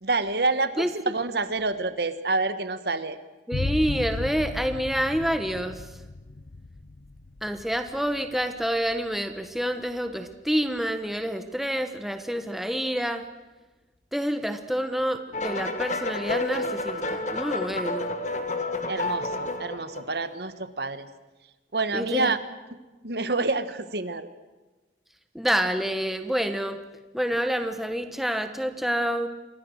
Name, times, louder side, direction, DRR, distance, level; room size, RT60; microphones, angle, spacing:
voice 1, 0.0-3.2 18.9-21.1 21.7-22.4 22.7-22.8 23.0-24.3, right 3 dB, 60° right, 12 dB, 1.3 m, -27 dB
sound 1, 3.5-10.9, left 2 dB, 75° left, 0.8 m, -36 dB
voice 2, 3.5-5.9 7.4-13.2 14.1-18.2 21.9-22.3 25.3-26.8 27.1-29.3, equal, ahead, 7 dB, 1.1 m, -28 dB
sound 2, 15.3-20.3, left 2 dB, 40° left, 1.9 m, -30 dB
28.0 x 23.0 x 6.5 m, 1.2 s
head